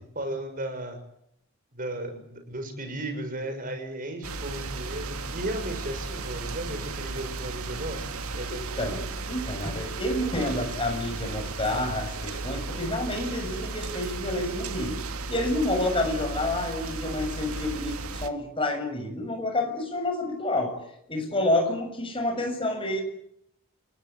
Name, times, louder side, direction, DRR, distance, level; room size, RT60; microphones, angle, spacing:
voice 1, 0.1-1.0 1.7-8.9, right 1 dB, 40° right, 6 dB, 6.6 m, -35 dB
sound 1, 4.2-18.3, right 3 dB, 80° right, 2.1 m, -35 dB
voice 2, 8.5-15.0 15.3-20.8 21.1-23.0, left 1 dB, 25° left, 4 dB, 6.9 m, -29 dB
30.0 x 19.0 x 9.7 m, 0.75 s
head